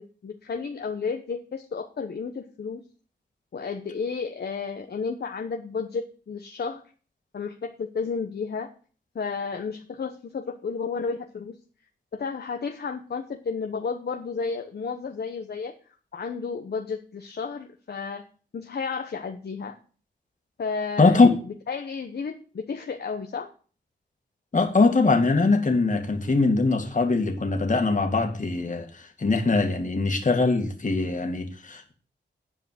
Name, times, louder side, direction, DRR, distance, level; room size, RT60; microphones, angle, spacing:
voice 1, 0.0-2.8 3.5-6.8 7.3-8.7 9.1-11.5 12.1-15.7 16.1-18.2 18.5-19.8 20.6-23.5, left 5 dB, 60° left, 1.0 m, -32 dB
voice 2, 21.0-21.3 24.5-31.9, left 3 dB, 40° left, 2.1 m, -22 dB
10.0 x 4.8 x 7.6 m
cardioid pair, 65°, 19 cm